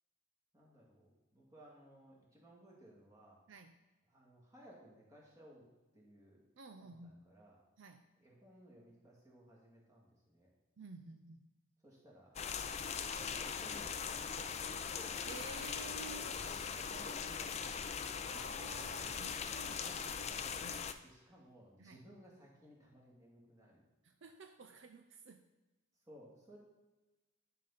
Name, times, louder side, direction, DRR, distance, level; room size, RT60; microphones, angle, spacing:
voice 1, 0.5-3.4 4.1-5.7 5.9-6.4 6.8-7.6 8.2-10.5 11.8-12.3 13.3-14.7 15.0-15.2 16.7-18.1 21.0-23.8 26.1-26.6, right 1 dB, 15° right, -4 dB, 2.2 m, -60 dB
voice 2, 6.6-7.2 7.8-8.0 10.8-11.4 12.8-13.0 15.3-16.4 18.3-20.4 20.6-21.0 21.8-22.0 24.0-25.4, right 3 dB, 60° right, 6 dB, 0.5 m, -52 dB
sound 1, 12.4-20.9, left 6 dB, 30° left, 0.4 m, -41 dB
11.0 x 5.8 x 4.0 m, 1.1 s
head